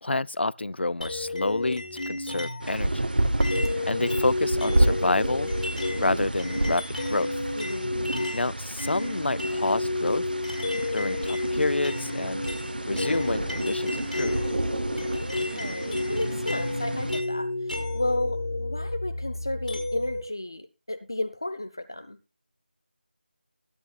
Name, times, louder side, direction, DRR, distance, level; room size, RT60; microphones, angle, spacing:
voice 1, 0.0-3.1 3.9-5.5 6.0-6.8 7.1-7.3 8.3-10.3 10.9-12.4 12.9-14.4, left 2 dB, 85° left, 0.5 m, -28 dB
sound 1, 1.0-2.7 3.4-8.5 8.8-20.2, left 2 dB, 50° left, 4.8 m, -31 dB
sound 2, 2.6-17.2, right 1 dB, 60° right, 1.3 m, -30 dB
voice 2, 3.8-4.2 7.6-7.9 15.1-22.2, left 1 dB, 25° left, 0.5 m, -33 dB
21.0 x 9.1 x 2.4 m
figure-of-eight pair, 180°, 6 cm